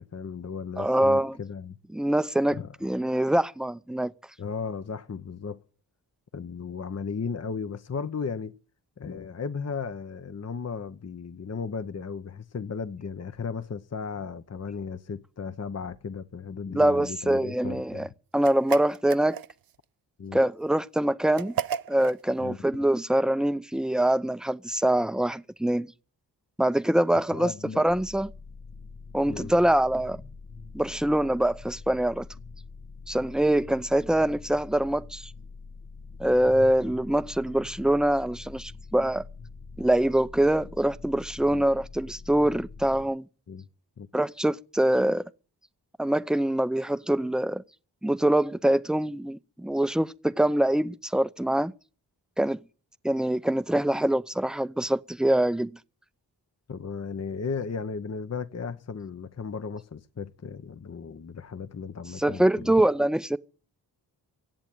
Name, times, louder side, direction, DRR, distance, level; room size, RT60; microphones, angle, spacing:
voice 1, 0.0-1.8 2.5-2.7 4.4-5.6 6.3-8.5 9.0-18.1 20.2-20.4 22.4-22.6 27.3-27.9 29.3-29.5 41.5-41.6 43.5-43.7 44.0-44.1 56.7-62.7, left 5 dB, 40° left, 0.9 m, -35 dB
voice 2, 0.8-1.4 1.9-4.1 16.7-18.1 18.3-19.4 20.3-21.6 21.9-25.9 26.6-28.3 29.1-30.2 30.7-32.3 33.1-35.3 36.2-39.2 39.8-43.3 44.1-45.2 46.0-47.6 48.0-51.7 52.4-52.6 53.0-55.8 62.2-63.4, right 1 dB, ahead, 0.7 m, -24 dB
sound 1, 18.4-19.8 21.4-22.2, right 8 dB, 55° right, 0.6 m, -33 dB
sound 2, 27.9-43.0, left 4 dB, 85° left, 3.0 m, -44 dB
16.5 x 7.5 x 9.0 m
cardioid pair, 60°, 42 cm